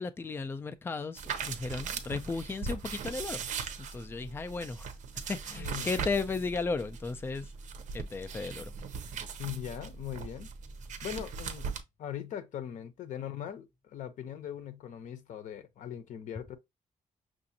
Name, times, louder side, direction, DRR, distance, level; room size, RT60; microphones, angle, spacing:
voice 1, 0.0-3.4 3.9-7.5 7.9-8.7, left 4 dB, 15° left, 0.4 m, -35 dB
sound 1, 1.1-11.8, right 5 dB, 70° right, 0.7 m, -39 dB
voice 2, 5.5-5.9 9.4-10.5 11.0-16.6, left 10 dB, 75° left, 0.7 m, -40 dB
6.0 x 2.5 x 2.7 m
cardioid pair, 140°, 13 cm